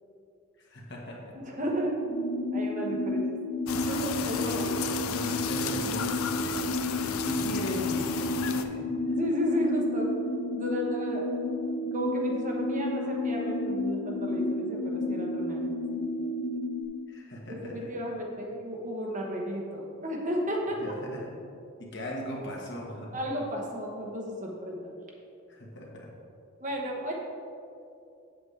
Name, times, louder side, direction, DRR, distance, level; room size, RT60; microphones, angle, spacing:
voice 1, 0.6-1.3 3.8-3.9 4.2-4.6 5.0-6.6 6.9-8.8 17.1-17.7 20.8-21.3 21.8-23.2 25.5-26.1, equal, 55° left, -2 dB, 1.5 m, -39 dB
voice 2, 1.3-2.0 2.5-3.3 3.7-4.8 9.1-10.2 10.5-11.4 11.9-16.3 17.5-20.9 23.1-24.9 26.6-27.1, equal, 35° right, -1 dB, 1.1 m, -33 dB
sound 1, 2.1-16.8, left 1 dB, 30° left, 0.6 m, -31 dB
sound 2, 3.7-8.6, left 7 dB, 80° left, 0.5 m, -34 dB
8.0 x 7.9 x 3.3 m, 2.6 s
head